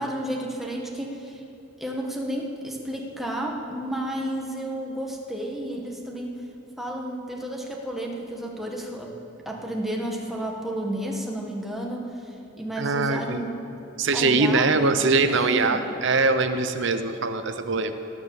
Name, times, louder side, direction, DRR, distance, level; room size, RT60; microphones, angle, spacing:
voice 1, 0.0-1.4 1.8-6.3 6.8-9.1 9.4-12.0 12.6-13.6 14.1-15.8, right 1 dB, ahead, -1 dB, 1.6 m, -32 dB
voice 2, 12.8-13.4 14.0-17.9, right 3 dB, 65° right, 8 dB, 0.9 m, -22 dB
18.5 x 9.9 x 7.3 m, 3.0 s
head